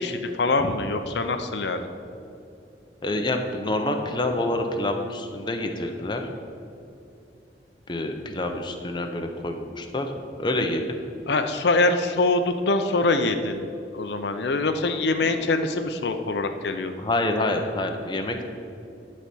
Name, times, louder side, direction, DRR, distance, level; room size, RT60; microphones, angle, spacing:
voice 1, 0.0-1.9 11.3-13.7 13.9-17.0, left 3 dB, 70° left, 7 dB, 0.6 m, -24 dB
voice 2, 3.0-6.3 7.9-10.1 10.4-11.0 15.2-15.4 17.0-18.4, left 1 dB, 25° left, 4 dB, 0.8 m, -27 dB
11.5 x 4.2 x 7.7 m, 2.6 s
head